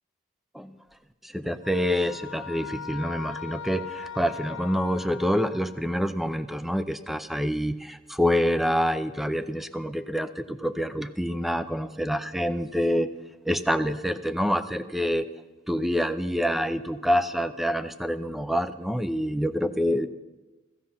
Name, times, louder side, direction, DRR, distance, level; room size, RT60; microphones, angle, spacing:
voice 1, 1.2-13.1 13.5-15.3 15.7-20.1, equal, ahead, 12 dB, 0.4 m, -27 dB
sound 1, 1.6-6.1, left 7 dB, 80° left, 0.6 m, -40 dB
16.5 x 15.0 x 5.7 m, 1.2 s
head